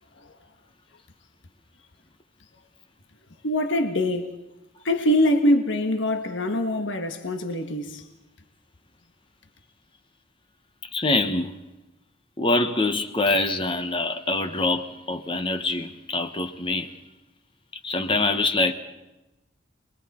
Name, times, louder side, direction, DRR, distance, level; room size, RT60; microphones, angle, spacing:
voice 1, 3.4-4.3 4.8-8.0, left 1 dB, 75° left, 1.6 m, -23 dB
voice 2, 10.9-11.5 12.4-16.9 17.8-18.7, left 2 dB, 25° left, 1.0 m, -24 dB
28.0 x 21.5 x 4.3 m
head